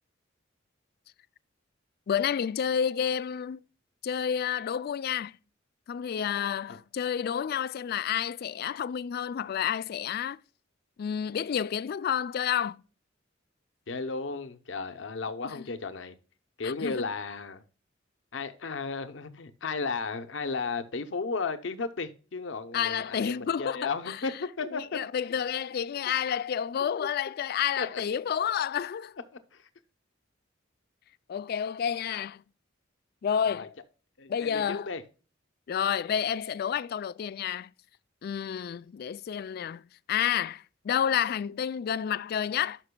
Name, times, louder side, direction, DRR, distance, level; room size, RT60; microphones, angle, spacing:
voice 1, 2.1-3.6 4.0-5.4 5.9-10.4 11.0-12.8 15.4-15.7 16.6-17.1 22.7-24.2 24.7-29.2 31.3-32.4 33.2-33.7 34.3-34.9 35.7-37.7 38.2-39.8 40.1-42.8, left 8 dB, 50° left, 0.3 m, -30 dB
voice 2, 13.9-16.1 16.6-17.6 18.3-25.0 26.8-27.1 27.8-28.0 29.5-29.7 33.5-33.7 34.2-35.0, left 4 dB, 70° left, 0.8 m, -34 dB
11.5 x 6.0 x 2.2 m
head